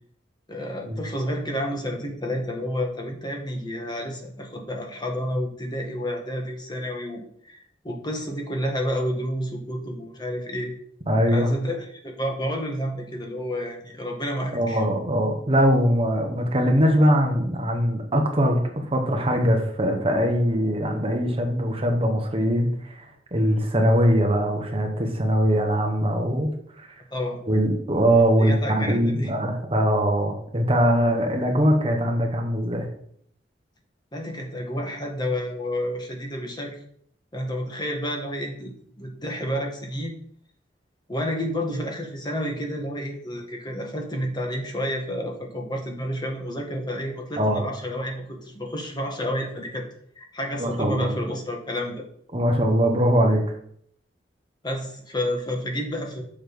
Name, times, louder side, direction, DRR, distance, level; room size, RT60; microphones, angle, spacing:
voice 1, 0.5-10.7 11.3-14.8 27.1-27.4 28.4-29.3 34.1-36.8 37.3-38.7 39.0-40.1 41.1-49.8 50.1-52.0 54.6-56.2, equal, 25° left, 1 dB, 1.5 m, -30 dB
voice 2, 11.1-11.5 14.5-18.6 18.9-23.0 23.3-26.9 27.5-32.9 47.4-47.6 50.6-51.1 52.3-53.4, equal, 35° right, 2 dB, 1.3 m, -21 dB
7.1 x 6.3 x 5.2 m, 0.65 s
head